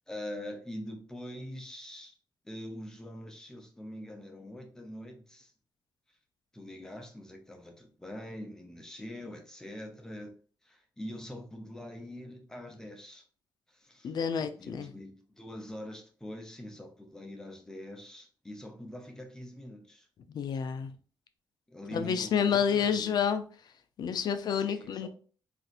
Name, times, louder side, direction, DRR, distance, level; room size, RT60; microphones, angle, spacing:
voice 1, 0.1-2.1 2.4-5.5 6.5-10.4 10.6-13.2 13.7-20.1 21.7-23.2 24.5-25.1, left 1 dB, 5° left, 0.6 m, -44 dB
voice 2, 14.0-14.9 20.3-20.9 21.9-23.4 24.0-25.1, left 7 dB, 55° left, 0.4 m, -29 dB
4.1 x 2.5 x 2.4 m
wide cardioid pair, 155°, 8 cm